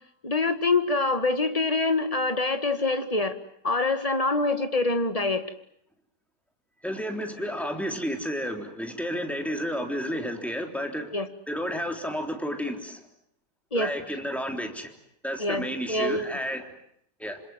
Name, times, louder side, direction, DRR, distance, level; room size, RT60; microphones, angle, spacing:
voice 1, 0.2-3.4 3.6-5.4 11.1-11.3 13.7-13.9 15.4-16.4, left 3 dB, 20° left, 9 dB, 1.9 m, -25 dB
voice 2, 6.8-11.1 11.5-13.0 13.7-14.9 15.2-16.7 17.2-17.4, equal, ahead, 4 dB, 3.5 m, -31 dB
27.5 x 26.5 x 7.5 m, 0.69 s
omnidirectional pair, 1.7 m